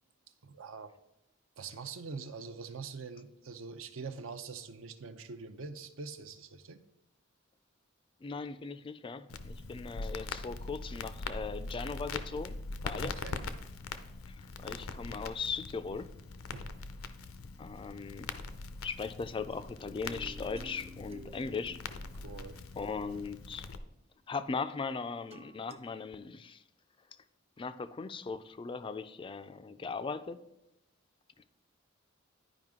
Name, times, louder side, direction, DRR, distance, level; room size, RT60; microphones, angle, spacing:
voice 1, 0.4-0.9 1.6-6.8 13.0-13.4 16.5-16.7 22.2-22.6, right 4 dB, 70° right, 9 dB, 0.6 m, -44 dB
voice 2, 8.2-12.6 12.8-13.1 14.3-16.1 17.6-18.4 18.8-21.8 22.8-23.7 24.3-26.6 27.6-30.4, left 4 dB, 25° left, 12 dB, 0.3 m, -39 dB
Crackle, 9.3-23.8, left 3 dB, 85° left, 0.6 m, -42 dB
sound 1, 19.5-23.5 25.3-25.8, right 2 dB, 30° right, 0.5 m, -54 dB
11.0 x 5.0 x 3.6 m, 0.89 s
head